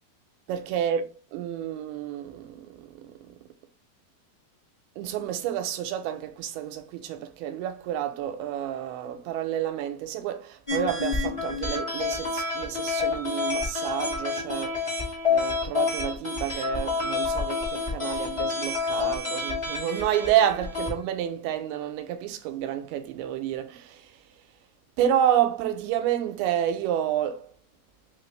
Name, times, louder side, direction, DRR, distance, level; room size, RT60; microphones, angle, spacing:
voice 1, 0.5-3.4 5.0-24.2 25.0-27.5, right 10 dB, 90° right, 2.6 m, -29 dB
sound 1, 10.7-20.9, left 4 dB, 30° left, 0.5 m, -29 dB
5.8 x 2.5 x 3.2 m
omnidirectional pair, 4.4 m